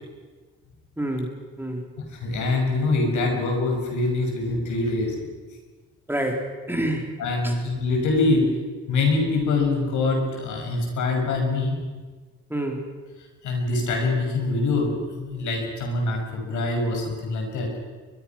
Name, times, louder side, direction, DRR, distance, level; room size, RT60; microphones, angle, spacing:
voice 1, 1.0-1.9 6.1-7.2 7.4-7.5 12.5-12.9, right 1 dB, 5° right, 2 dB, 4.1 m, -28 dB
voice 2, 2.1-5.1 7.2-8.5 8.9-11.8 13.4-17.7, left 3 dB, 75° left, 2 dB, 6.7 m, -24 dB
22.5 x 22.5 x 6.1 m, 1.4 s
cardioid pair, 90°, 30 cm